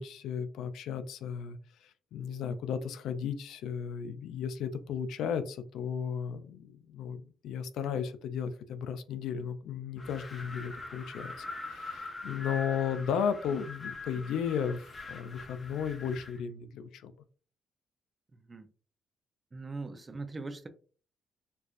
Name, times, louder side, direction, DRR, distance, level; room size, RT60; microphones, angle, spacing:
voice 1, 0.0-1.6 2.1-17.1, left 7 dB, 80° left, 0.3 m, -35 dB
Wind, 10.0-16.4, left 3 dB, 35° left, 0.9 m, -43 dB
voice 2, 18.3-18.7 19.5-20.7, right 3 dB, 25° right, 0.5 m, -41 dB
4.4 x 2.4 x 2.4 m
cardioid pair, 90°, 0 cm